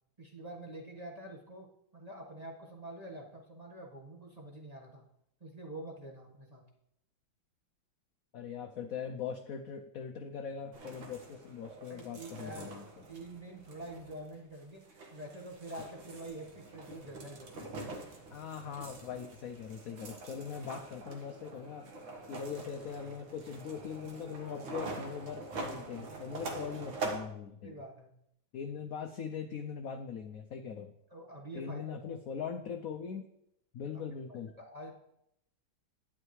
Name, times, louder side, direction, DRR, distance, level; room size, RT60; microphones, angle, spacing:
voice 1, 0.2-5.0 5.4-6.6 11.9-12.7 13.1-17.8 27.6-28.2 31.1-32.1 33.9-34.0 34.3-34.9, right 1 dB, 20° right, -1 dB, 1.3 m, -46 dB
voice 2, 8.3-12.8 18.3-21.9 22.3-27.8 28.5-30.9 31.5-33.3 33.7-34.5, left 7 dB, 75° left, 6 dB, 0.8 m, -41 dB
sound 1, 10.7-27.2, right 3 dB, 70° right, 2.1 m, -45 dB
11.0 x 9.9 x 3.2 m, 0.77 s
omnidirectional pair, 2.2 m